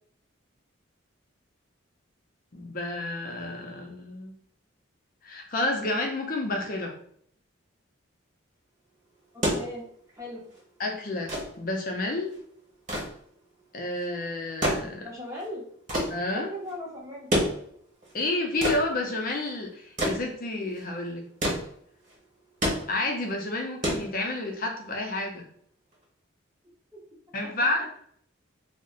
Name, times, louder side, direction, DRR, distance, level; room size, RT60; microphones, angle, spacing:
voice 1, 2.5-4.3 5.2-6.9 10.8-12.3 13.7-15.1 16.1-16.5 18.1-21.3 22.9-25.4 27.3-27.9, left 2 dB, 45° left, 2 dB, 0.5 m, -30 dB
sound 1, 9.2-24.7 25.9-26.0, equal, 40° right, 1.1 m, -31 dB
voice 2, 9.3-9.8 10.2-10.4 15.0-15.7 16.2-17.3 26.9-27.0 27.4-27.7, left 1 dB, 15° right, -3 dB, 0.7 m, -38 dB
2.5 x 2.1 x 3.7 m, 0.64 s
head